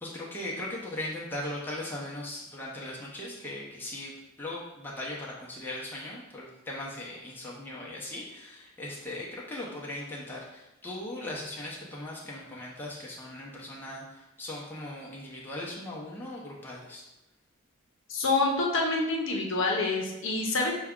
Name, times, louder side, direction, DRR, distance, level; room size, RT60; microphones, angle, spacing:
voice 1, 0.0-17.0, left 1 dB, 10° left, -5 dB, 0.6 m, -39 dB
voice 2, 18.1-20.7, left 3 dB, 60° left, 0 dB, 0.7 m, -27 dB
5.8 x 2.3 x 3.6 m, 0.96 s
head